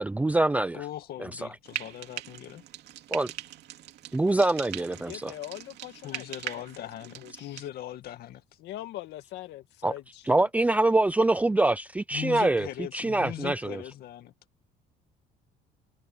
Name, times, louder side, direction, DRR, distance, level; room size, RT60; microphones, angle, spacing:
voice 1, 0.0-0.8 1.2-1.4 3.1-3.3 4.1-5.3 9.8-9.9 10.3-12.7 12.9-13.8, right 2 dB, 10° right, 0.6 m, -24 dB
voice 2, 0.7-2.6 6.0-8.4 12.1-14.3, left 12 dB, 60° left, 2.2 m, -39 dB
Frying (food), 1.6-7.7, right 13 dB, 70° right, 2.8 m, -41 dB
voice 3, 5.0-7.7 8.6-10.2, left 14 dB, 80° left, 2.3 m, -42 dB
cardioid pair, 140°, 18 cm